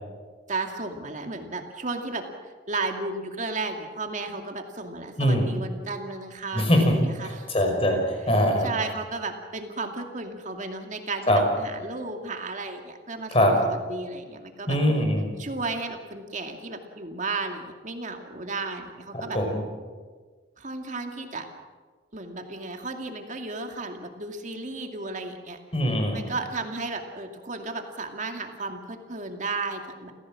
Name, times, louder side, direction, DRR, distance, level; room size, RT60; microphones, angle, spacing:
voice 1, 0.5-7.5 8.6-11.3 11.6-14.8 15.4-19.4 20.6-21.5 22.1-25.6 26.1-30.1, right 3 dB, 45° right, 4 dB, 2.4 m, -34 dB
voice 2, 6.5-8.7 11.3-11.4 13.3-13.5 14.7-15.3 19.1-19.6 25.7-26.2, equal, 35° left, 3 dB, 5.5 m, -22 dB
29.0 x 15.5 x 7.6 m, 1.5 s
head